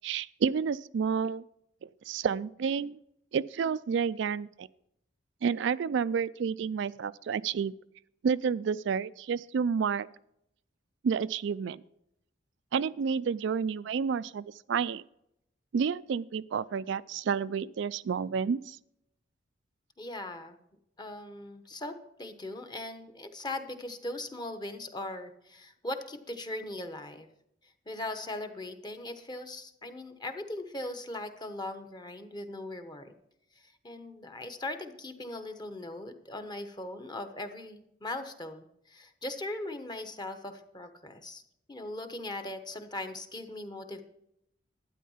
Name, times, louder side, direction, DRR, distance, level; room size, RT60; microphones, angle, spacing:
voice 1, 0.0-1.4 2.1-3.0 3.3-4.7 5.4-7.7 8.2-10.1 11.0-11.8 12.7-15.0 15.7-18.8, right 6 dB, 65° right, 15 dB, 0.3 m, -30 dB
voice 2, 20.0-20.6 21.0-27.3 27.9-33.1 33.6-41.4 41.7-44.0, left 2 dB, 25° left, 8 dB, 1.1 m, -39 dB
12.0 x 9.3 x 5.6 m, 0.78 s
head